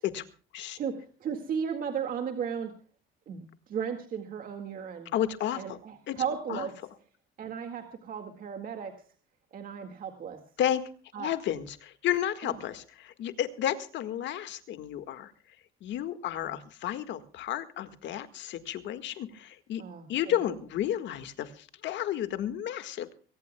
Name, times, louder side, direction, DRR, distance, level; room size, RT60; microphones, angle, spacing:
voice 1, 0.8-2.7 3.3-5.1 5.5-6.7 7.4-8.9 9.5-10.4 11.1-11.3 12.4-12.6 16.4-16.5 19.8-20.4, right 7 dB, 45° right, 5 dB, 2.0 m, -35 dB
voice 2, 5.1-5.8 6.1-6.2 6.5-6.7 10.6-10.8 11.2-15.3 15.8-19.8 20.1-23.1, left 11 dB, 60° left, 10 dB, 1.7 m, -32 dB
23.0 x 18.0 x 2.3 m, 0.40 s
cardioid pair, 155°, 21 cm